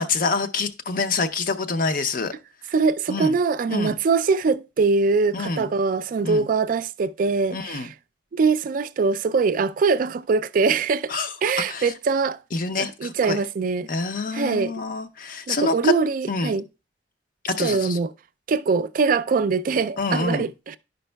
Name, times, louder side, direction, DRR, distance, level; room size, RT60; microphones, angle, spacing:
voice 1, 0.0-2.3 3.1-3.3 3.7-3.9 5.3-5.7 6.2-6.5 7.5-7.9 11.1-11.3 11.7-11.9 12.5-13.4 13.9-15.9 16.3-16.5 17.4-18.0 20.0-20.5, left 3 dB, 50° left, 0.5 m, -26 dB
voice 2, 2.7-7.9 8.3-11.1 11.4-12.4 12.8-13.9 14.3-14.8 15.5-16.7 17.6-18.1 18.5-20.8, right 4 dB, 50° right, 0.3 m, -23 dB
11.0 x 5.2 x 2.2 m
head